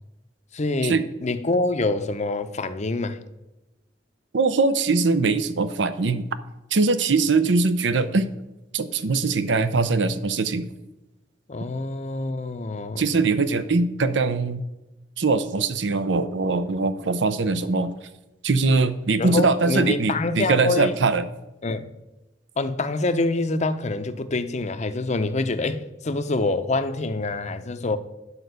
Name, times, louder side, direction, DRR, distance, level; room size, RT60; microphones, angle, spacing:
voice 1, 0.5-3.2 11.5-13.1 19.2-21.0 21.6-21.9 22.6-28.0, left 2 dB, 40° left, 10 dB, 0.7 m, -26 dB
voice 2, 4.3-6.2 6.7-8.3 8.7-10.7 13.0-14.6 15.2-17.9 18.4-21.3, right 3 dB, 80° right, 12 dB, 0.7 m, -22 dB
9.7 x 5.1 x 8.0 m, 0.99 s
head